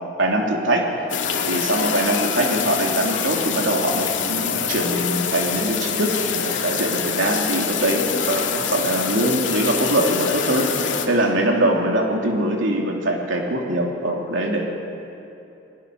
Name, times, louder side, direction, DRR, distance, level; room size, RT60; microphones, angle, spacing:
voice 1, 0.2-0.9 1.5-14.7, right 1 dB, 80° right, 0 dB, 3.1 m, -22 dB
sound 1, 1.1-11.1, left 6 dB, 75° left, 2.3 m, -25 dB
29.5 x 21.0 x 6.5 m, 2.8 s
head